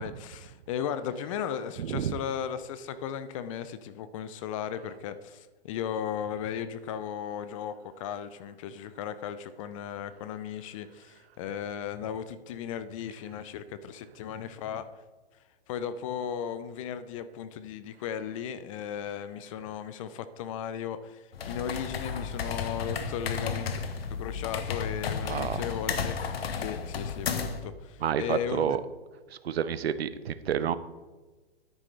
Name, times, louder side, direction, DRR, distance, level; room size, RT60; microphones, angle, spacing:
voice 1, 0.0-14.9 15.7-23.7 24.2-26.2 26.5-28.8, left 8 dB, 35° left, 13 dB, 0.5 m, -36 dB
voice 2, 1.8-2.2 25.2-25.6 28.0-28.8 29.3-30.7, right 9 dB, 85° right, 14 dB, 0.6 m, -29 dB
sound 1, 21.3-27.7, left 6 dB, 75° left, 1.1 m, -33 dB
9.7 x 9.6 x 3.3 m, 1.3 s
hypercardioid pair, 130°, 30 cm